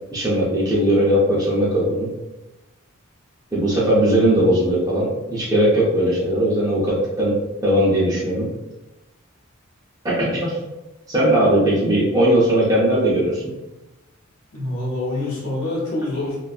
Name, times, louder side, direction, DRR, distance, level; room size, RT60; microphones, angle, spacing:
voice 1, 0.1-2.1 3.5-7.4 7.6-8.5 10.0-10.6 11.1-13.5, right 1 dB, 15° right, -7 dB, 0.5 m, -19 dB
voice 2, 14.5-16.4, left 2 dB, 85° left, -4 dB, 0.8 m, -26 dB
2.5 x 2.3 x 2.3 m, 1.0 s
head